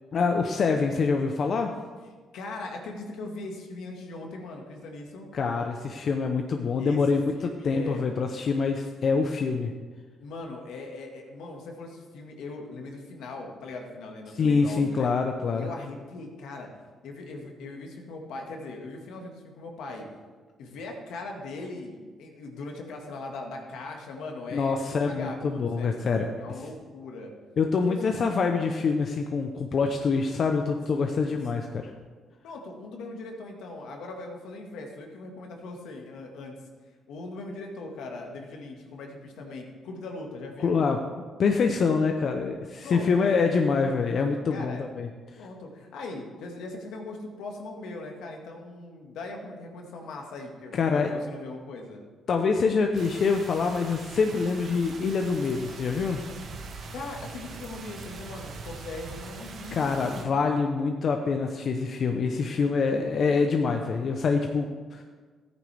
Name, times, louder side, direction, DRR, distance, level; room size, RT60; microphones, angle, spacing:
voice 1, 0.1-1.7 5.3-9.7 14.3-15.7 24.5-26.3 27.6-31.9 40.6-41.0 41.4-45.1 50.7-51.1 52.3-56.2 59.7-65.0, left 5 dB, 55° left, 4 dB, 0.7 m, -25 dB
voice 2, 2.3-5.3 6.8-7.0 7.3-8.1 10.2-15.1 15.5-16.7 17.0-20.1 20.6-26.0 26.4-27.3 27.7-28.2 30.9-31.2 31.5-31.7 32.4-36.6 37.1-40.8 42.8-43.7 44.5-44.9 45.4-52.0 56.9-60.3, left 2 dB, 85° left, 1 dB, 1.8 m, -40 dB
sound 1, 52.9-60.2, right 4 dB, 60° right, 1.3 m, -42 dB
13.5 x 9.4 x 3.4 m, 1.4 s
cardioid pair, 90°, 0 cm